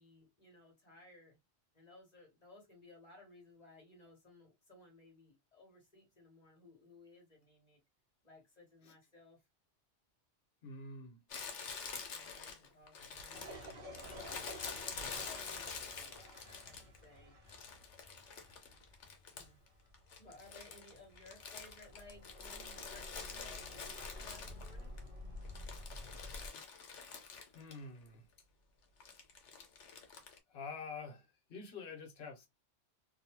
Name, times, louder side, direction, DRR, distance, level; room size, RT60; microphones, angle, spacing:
voice 1, 0.0-1.4 1.7-7.8 8.2-9.4 12.1-14.8 15.2-16.2 16.6-17.4 19.3-19.6 20.2-24.9, left 2 dB, 40° left, 1.1 m, -60 dB
voice 2, 10.6-11.2 27.5-28.2 30.5-32.5, left 4 dB, 65° left, 1.1 m, -47 dB
Crumpling crinkling, 11.3-17.0 17.5-19.7 19.9-25.0 25.4-27.8 28.1-28.2 29.0-30.4, left 5 dB, 85° left, 1.1 m, -47 dB
sound 1, 13.3-26.5, left 1 dB, 55° right, 1.0 m, -52 dB
2.6 x 2.2 x 2.8 m
omnidirectional pair, 1.2 m